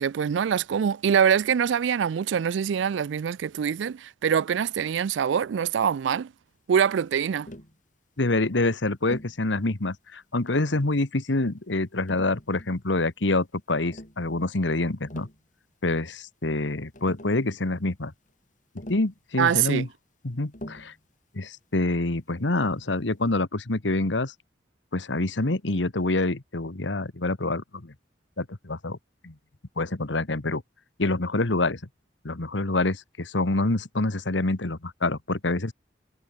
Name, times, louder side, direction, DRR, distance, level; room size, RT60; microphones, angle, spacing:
voice 1, 0.0-6.3 6.7-7.5 19.4-19.9, right 7 dB, 80° right, 0.4 m, -24 dB
Tap, 7.4-7.8 9.1-9.4 10.5-11.0 12.1-12.8 13.8-14.2 14.9-15.4 16.6-16.7 16.9-17.5 18.8-19.2 20.5-21.0 22.6-22.9, equal, 45° left, 5.6 m, -43 dB
voice 2, 8.2-15.3 15.8-18.1 18.9-19.9 20.2-20.9 21.3-24.3 24.9-27.9 28.4-29.0 29.2-29.3 29.8-30.6 31.0-31.8 32.2-35.7, left 2 dB, 85° left, 1.5 m, -26 dB
head